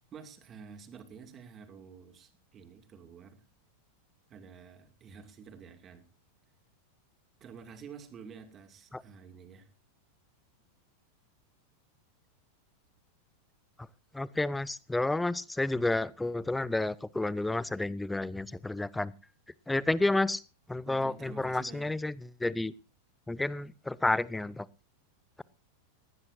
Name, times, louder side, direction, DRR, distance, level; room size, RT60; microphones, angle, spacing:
voice 1, 0.1-3.4 4.3-6.0 7.4-9.7 20.9-21.9, right 6 dB, 25° right, 7 dB, 2.5 m, -49 dB
voice 2, 14.1-19.1 19.7-20.4 20.7-22.7 23.3-24.7, left 2 dB, 5° left, 23 dB, 0.6 m, -30 dB
19.5 x 16.5 x 2.7 m, 0.33 s
figure-of-eight pair, 90°, 0 cm